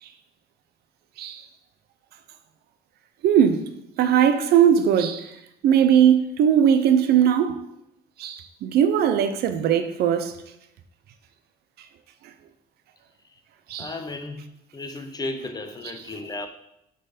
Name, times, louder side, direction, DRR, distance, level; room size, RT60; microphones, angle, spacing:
voice 1, 3.2-3.7 4.0-5.4 5.6-7.6 8.2-10.4 13.7-13.9, right 9 dB, 70° right, 0.7 m, -19 dB
voice 2, 13.8-16.5, left 2 dB, 25° left, 0.7 m, -34 dB
6.5 x 3.9 x 5.1 m
cardioid pair, 110°, 17 cm